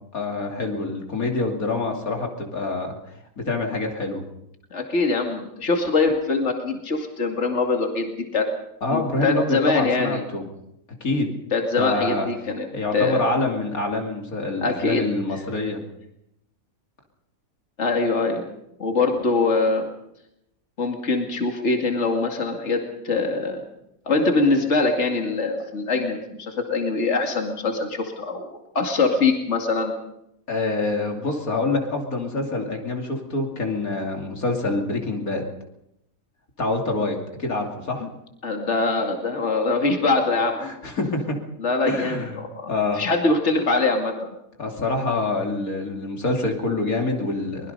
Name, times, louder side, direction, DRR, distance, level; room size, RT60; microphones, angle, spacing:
voice 1, 0.1-3.0 3.4-4.2 8.8-10.4 11.0-11.3 11.8-12.3 12.7-15.8 30.5-35.4 36.6-38.1 40.6-41.4 41.9-42.4 42.7-43.0 44.6-47.7, left 2 dB, 85° left, 2 dB, 3.3 m, -26 dB
voice 2, 4.7-8.5 8.9-10.2 11.5-12.7 12.9-13.2 14.6-15.1 17.8-18.4 18.8-19.8 20.8-23.6 24.1-28.5 28.7-29.9 38.0-38.1 38.4-40.6 41.6-44.3, left 3 dB, 55° left, 3 dB, 2.6 m, -23 dB
23.5 x 21.0 x 5.4 m, 0.81 s
omnidirectional pair, 1.5 m